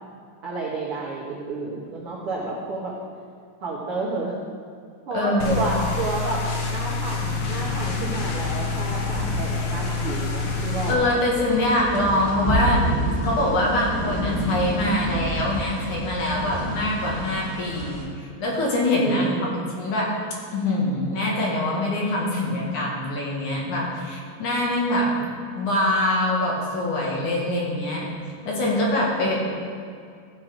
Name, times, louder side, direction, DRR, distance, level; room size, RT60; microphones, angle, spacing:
voice 1, 0.4-2.9 3.6-4.4 5.1-6.4 6.7-11.1 19.0-19.6 29.3-29.5, right 3 dB, 85° right, -5 dB, 1.2 m, -30 dB
voice 2, 5.1-5.7 10.9-12.8 13.2-20.1 20.5-25.1 25.5-28.1 28.4-29.4, left 1 dB, 55° left, -4 dB, 2.9 m, -24 dB
sound 1, 5.4-10.9, left 4 dB, 80° left, 1.4 m, -27 dB
sound 2, 7.2-18.0, equal, 50° right, 1.1 m, -30 dB
15.5 x 6.1 x 5.1 m, 2.3 s
omnidirectional pair, 4.7 m